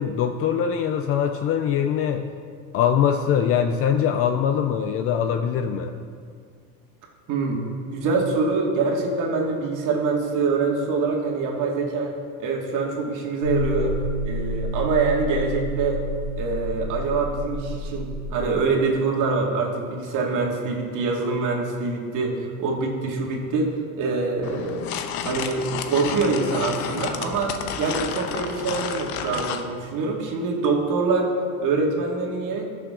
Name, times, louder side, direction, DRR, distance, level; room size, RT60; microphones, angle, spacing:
voice 1, 0.0-2.3 2.7-5.9, left 8 dB, 35° left, 7 dB, 0.5 m, -22 dB
voice 2, 7.3-7.6 7.9-12.1 12.4-13.9 14.2-16.0 16.4-24.8 25.2-31.3 31.6-32.7, right 4 dB, 45° right, 0 dB, 2.3 m, -25 dB
sound 1, 13.4-18.6, equal, 65° left, 1.7 m, -29 dB
sound 2, 24.4-29.7, left 8 dB, 85° left, 1.1 m, -31 dB
20.0 x 6.8 x 3.8 m, 2.1 s
supercardioid pair, 145°, 44 cm